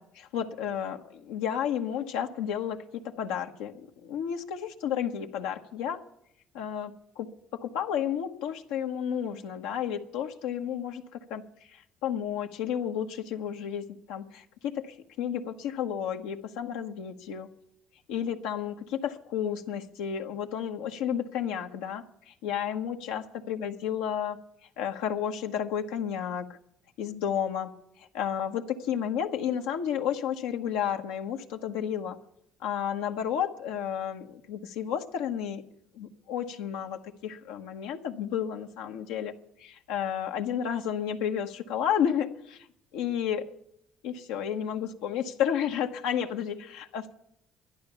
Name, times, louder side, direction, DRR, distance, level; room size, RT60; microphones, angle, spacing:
voice 1, 0.0-6.0 6.5-17.5 18.1-24.4 24.8-26.5 27.0-27.7 28.0-32.2 32.6-35.6 35.9-39.3 39.6-42.7 42.9-43.5 44.0-47.1, left 9 dB, 85° left, 3 dB, 1.1 m, -32 dB
12.0 x 10.5 x 6.9 m, 0.75 s
supercardioid pair, 70°, 0 cm